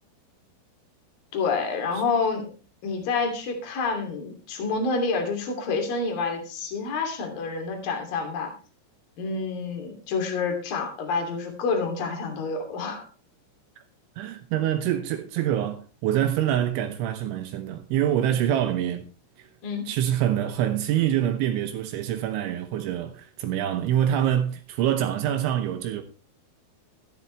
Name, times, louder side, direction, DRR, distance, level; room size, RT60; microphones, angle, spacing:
voice 1, 1.3-2.5 2.8-8.5 9.2-13.1 19.6-19.9, left 4 dB, 50° left, 4.1 m, -28 dB
voice 2, 14.2-19.0 19.4-19.5 19.9-26.0, right 11 dB, 75° right, 3.0 m, -25 dB
13.5 x 13.5 x 3.3 m
omnidirectional pair, 6.0 m